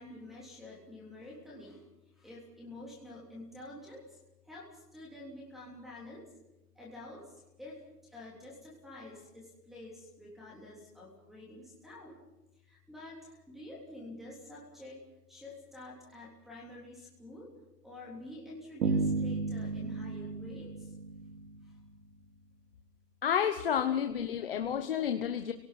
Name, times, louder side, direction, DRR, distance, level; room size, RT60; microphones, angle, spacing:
voice 1, 0.0-1.8 2.2-4.2 4.4-6.2 6.7-12.2 12.7-15.0 15.3-17.5 17.8-20.9 21.6-21.7, left 1 dB, ahead, -4 dB, 3.2 m, -48 dB
sound 1, 18.8-21.8, right 4 dB, 75° right, 3.9 m, -33 dB
voice 2, 23.2-25.5, left 8 dB, 35° left, 7 dB, 0.9 m, -30 dB
30.0 x 18.5 x 5.9 m, 0.94 s
hypercardioid pair, 175°, 49 cm